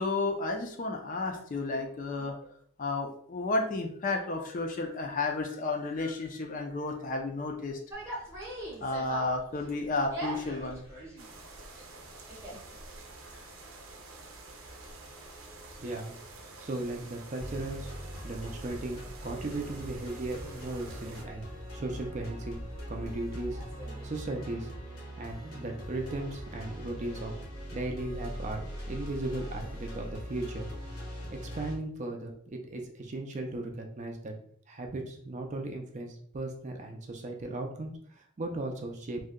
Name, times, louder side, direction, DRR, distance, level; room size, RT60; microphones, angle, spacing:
voice 1, 0.0-2.4 2.8-7.8 8.1-8.2 8.8-10.8, left 3 dB, 40° left, 3 dB, 0.4 m, -32 dB
sound 1, 7.9-24.2, right 1 dB, 10° right, 0.8 m, -46 dB
sound 2, 11.2-21.2, right 3 dB, 80° right, 0.6 m, -49 dB
voice 2, 15.8-16.2 16.6-17.9 18.2-21.5 21.7-22.6 22.9-23.6 24.0-24.7 25.2-27.3 27.7-30.7 31.4-34.3 34.7-39.2, right 2 dB, 35° right, 3 dB, 0.4 m, -37 dB
sound 3, 17.4-31.8, equal, 80° left, 1.0 m, -41 dB
2.7 x 2.1 x 3.6 m, 0.62 s
head